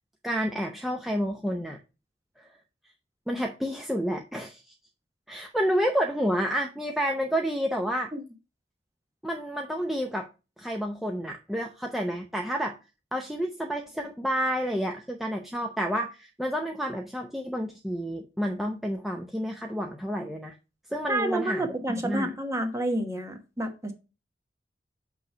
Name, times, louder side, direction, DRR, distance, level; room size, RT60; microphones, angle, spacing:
voice 1, 0.2-1.8 2.4-2.5 3.3-4.7 5.3-8.1 9.2-10.3 10.6-12.8 13.1-20.5 20.9-22.3, equal, ahead, 0.6 m, -30 dB
voice 2, 21.1-23.9, right 1 dB, 15° right, 1.1 m, -29 dB
8.0 x 3.1 x 5.5 m
head